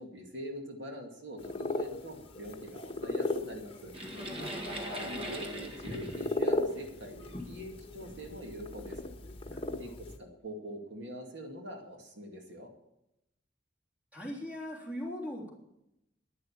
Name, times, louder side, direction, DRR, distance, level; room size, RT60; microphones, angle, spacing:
voice 1, 0.0-3.9 4.8-9.1 9.8-12.7, equal, 70° right, 2 dB, 2.2 m, -44 dB
sound 1, 1.4-10.2, left 2 dB, 30° left, 1.3 m, -37 dB
sound 2, 3.9-7.3 8.1-8.2 8.8-9.0, equal, 30° right, 1.8 m, -40 dB
voice 2, 4.1-4.7 9.5-9.9 14.1-15.5, equal, 5° right, -3 dB, 3.3 m, -41 dB
11.5 x 10.5 x 7.2 m, 0.83 s
head